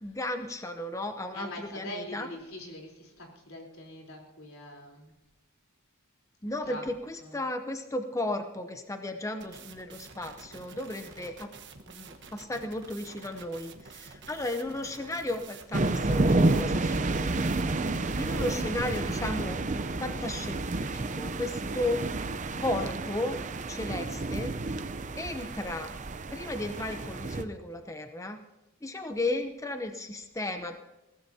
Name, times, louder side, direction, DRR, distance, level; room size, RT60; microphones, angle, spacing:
voice 1, 0.0-2.3 6.4-11.5 11.9-17.6 18.2-19.6 20.0-22.1 22.6-23.4 23.7-24.8 25.2-25.9 26.3-28.4 28.8-30.8, left 1 dB, 15° left, 6 dB, 0.8 m, -34 dB
voice 2, 1.3-5.1 6.7-6.8 7.2-7.4 17.9-18.3 21.6-22.0, left 1 dB, 85° left, 0 dB, 3.8 m, -43 dB
sound 1, 9.4-19.2, right 5 dB, 60° right, 1.3 m, -49 dB
sound 2, 15.7-27.4, right 2 dB, 35° right, 0.7 m, -30 dB
21.5 x 16.5 x 2.8 m, 1.0 s
head